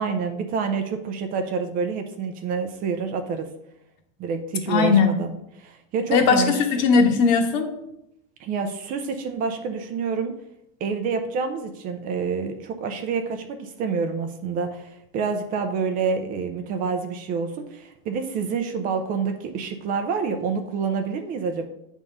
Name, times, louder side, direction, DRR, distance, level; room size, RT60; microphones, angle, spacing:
voice 1, 0.0-3.5 4.2-6.6 8.4-10.3 10.8-21.6, right 5 dB, 30° right, 6 dB, 0.5 m, -27 dB
voice 2, 4.7-5.1 6.1-7.7, left 5 dB, 50° left, 4 dB, 1.2 m, -18 dB
8.0 x 3.6 x 5.3 m, 0.83 s
supercardioid pair, 175°, 29 cm